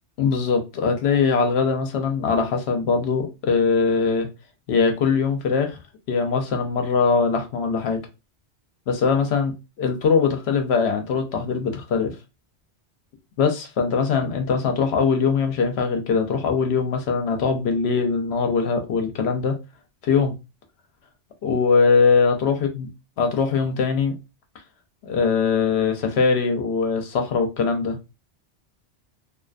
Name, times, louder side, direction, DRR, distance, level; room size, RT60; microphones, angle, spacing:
voice 1, 0.2-4.3 4.7-5.8 6.1-8.0 8.9-9.5 9.8-12.2 13.4-19.6 20.0-20.3 21.4-22.9 23.2-24.1 25.0-28.0, left 5 dB, 70° left, 0.8 m, -21 dB
2.4 x 2.4 x 2.2 m
omnidirectional pair, 1.2 m